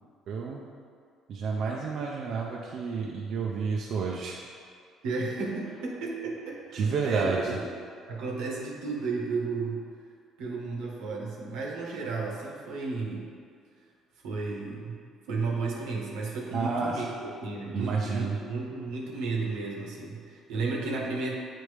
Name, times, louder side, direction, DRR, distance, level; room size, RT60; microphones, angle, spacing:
voice 1, 0.3-0.7 1.3-4.4 6.7-7.6 16.5-17.0 17.7-18.4, right 5 dB, 60° right, -2 dB, 0.5 m, -30 dB
voice 2, 5.0-7.6 8.1-9.9 10.4-13.3 14.2-15.0 15.3-21.4, right 3 dB, 90° right, -2 dB, 1.1 m, -33 dB
8.0 x 4.2 x 3.3 m, 2.2 s
cardioid pair, 95°, 0 cm